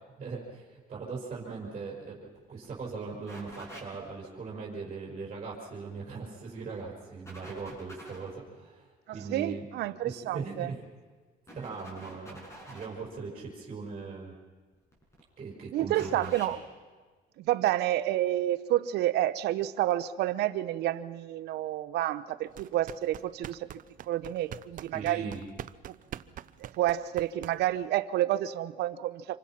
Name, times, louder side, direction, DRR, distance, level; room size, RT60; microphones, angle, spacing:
voice 1, 0.2-2.2 2.5-9.6 10.0-10.8 11.5-14.4 15.4-16.3 24.9-25.4, right 4 dB, 35° right, -3 dB, 5.4 m, -40 dB
sound 1, 2.3-2.4 2.6-2.8 3.3-4.1 6.2-6.8 7.3-8.3 10.5-10.8 11.5-13.0 14.7-15.2 15.9-16.6, right 1 dB, 15° left, 7.3 m, -48 dB
voice 2, 9.1-10.7 15.7-16.6 17.4-23.7 24.0-25.3 25.9-26.0 26.6-29.4, right 13 dB, 75° right, 15 dB, 0.9 m, -29 dB
sound 2, 22.5-27.9, right 11 dB, 50° right, 0.7 m, -44 dB
27.0 x 24.0 x 5.9 m, 1.4 s
cardioid pair, 110°, 17 cm